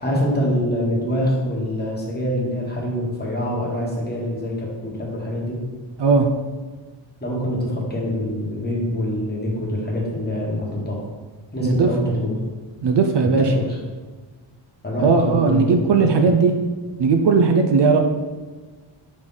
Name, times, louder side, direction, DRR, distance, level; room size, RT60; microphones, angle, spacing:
voice 1, 0.0-5.6 7.2-11.0 11.5-12.3 13.4-13.8 14.8-16.1, equal, 20° left, -3 dB, 1.2 m, -25 dB
voice 2, 11.6-12.2 12.8-13.4 15.0-16.5 17.0-18.0, right 5 dB, 60° right, 5 dB, 0.5 m, -17 dB
6.1 x 4.2 x 3.8 m, 1.4 s
wide cardioid pair, 170°, 49 cm